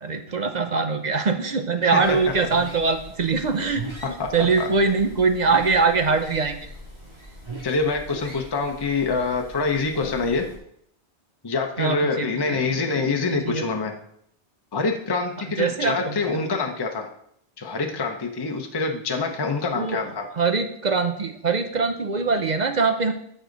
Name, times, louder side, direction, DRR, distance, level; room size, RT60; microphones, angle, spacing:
voice 1, 0.0-3.8 4.3-6.6 11.8-12.8 13.3-13.7 15.5-16.4 19.7-20.0 20.3-23.1, right 4 dB, 45° right, 7 dB, 0.7 m, -23 dB
voice 2, 1.8-2.2 4.0-4.3 4.6-4.7 7.6-10.4 11.4-13.9 14.7-17.1 17.6-20.3, left 4 dB, 25° left, 3 dB, 0.8 m, -25 dB
sound 1, 2.0-10.6, right 2 dB, 25° right, 2.1 m, -40 dB
13.5 x 5.0 x 3.9 m, 0.71 s
omnidirectional pair, 1.2 m